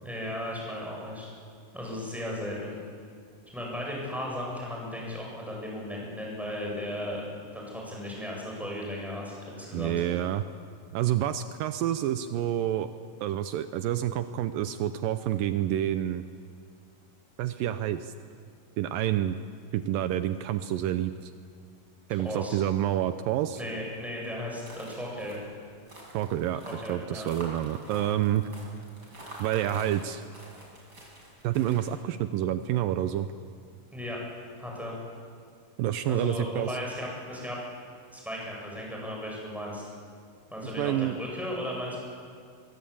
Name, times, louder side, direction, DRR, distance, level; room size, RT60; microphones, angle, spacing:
voice 1, 0.0-1.3 1.7-2.8 3.5-7.2 7.5-10.0 22.2-22.6 23.5-25.4 26.6-27.3 33.9-34.2 34.6-34.9 36.1-37.6 38.1-39.9 40.5-42.0, left 1 dB, ahead, -3 dB, 7.8 m, -36 dB
voice 2, 9.7-10.4 10.9-12.9 13.2-16.2 17.4-18.1 18.8-19.4 19.7-21.3 22.1-23.6 26.1-28.5 29.4-30.2 31.4-33.3 35.8-36.8 40.8-41.2, right 12 dB, 80° right, 10 dB, 2.4 m, -28 dB
sound 1, 24.6-32.0, right 1 dB, 25° right, 7.0 m, -47 dB
23.5 x 23.5 x 8.7 m, 2.2 s
omnidirectional pair, 4.0 m